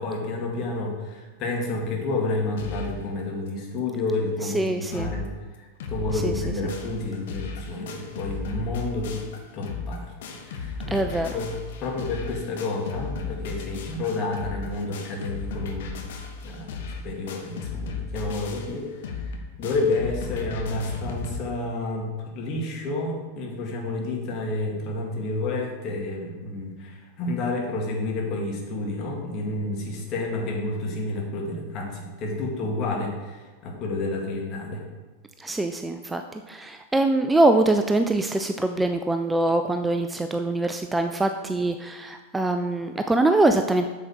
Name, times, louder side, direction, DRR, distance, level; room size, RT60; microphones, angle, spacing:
voice 1, 0.0-5.3 5.6-9.3 9.5-16.1 16.4-34.8, left 2 dB, 35° left, 0 dB, 2.1 m, -30 dB
sound 1, 2.6-3.0 3.5-3.6 3.8-3.9 4.4-4.5 4.7-5.3 5.5-21.4, left 4 dB, 55° left, 1.0 m, -35 dB
voice 2, 4.5-5.1 6.2-6.3 10.9-11.3 35.4-43.9, right 2 dB, 10° right, 7 dB, 0.4 m, -23 dB
8.1 x 7.0 x 4.5 m, 1.3 s
figure-of-eight pair, 90°, 0 cm